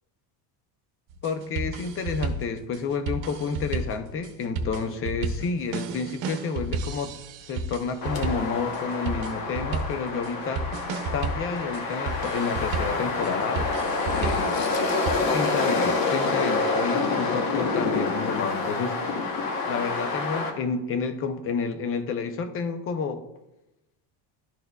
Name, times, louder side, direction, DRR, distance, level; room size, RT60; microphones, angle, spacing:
sound 1, 1.1-15.1, right 3 dB, 75° right, 0.9 m, -33 dB
voice 1, 1.2-7.1 7.5-10.7 11.1-13.7 14.2-14.6 15.3-19.2 19.7-23.3, left 5 dB, 30° left, 8 dB, 0.4 m, -30 dB
sound 2, 8.0-20.5, left 3 dB, 45° left, 1.0 m, -27 dB
12.0 x 4.3 x 2.2 m, 0.97 s
cardioid pair, 170°, 47 cm